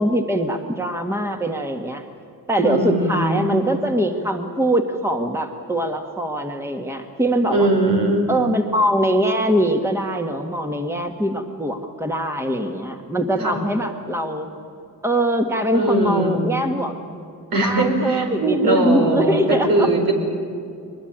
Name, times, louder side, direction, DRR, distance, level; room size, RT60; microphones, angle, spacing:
voice 1, 0.0-2.0 2.5-7.7 8.3-14.5 15.0-16.9 17.5-19.9, right 1 dB, 5° right, 4 dB, 1.8 m, -22 dB
voice 2, 2.6-3.5 7.5-8.3 13.4-13.6 15.7-16.4 17.5-20.1, right 2 dB, 65° right, 3 dB, 5.2 m, -20 dB
23.0 x 21.0 x 8.9 m, 2.5 s
cardioid pair, 90°, 38 cm